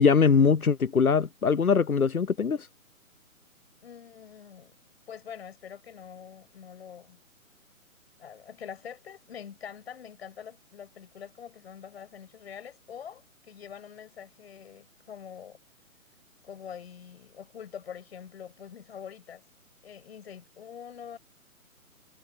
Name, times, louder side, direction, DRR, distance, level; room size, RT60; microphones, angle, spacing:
voice 1, 0.0-2.7, left 5 dB, 90° left, 0.8 m, -22 dB
voice 2, 3.8-4.8 5.1-7.2 8.2-15.6 16.4-19.4 19.8-21.2, left 8 dB, 45° left, 7.3 m, -45 dB
figure-of-eight pair, 140°, 42 cm